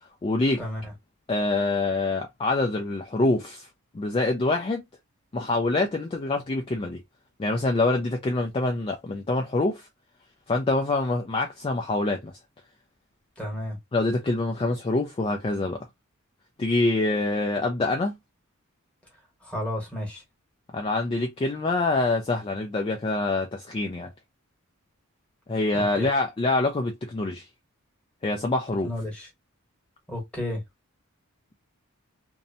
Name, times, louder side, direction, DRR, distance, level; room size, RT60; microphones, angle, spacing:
voice 1, 0.0-0.6 1.3-3.7 3.9-4.8 5.3-7.0 7.4-9.9 10.5-12.4 13.9-15.9 16.6-18.2 20.7-24.1 25.5-27.5 28.2-28.9, left 2 dB, 25° left, 0.3 m, -25 dB
voice 2, 13.4-13.8 19.4-20.2 25.9-26.1 28.8-29.3 30.1-30.6, left 1 dB, 5° left, 1.1 m, -32 dB
2.6 x 2.1 x 2.6 m
head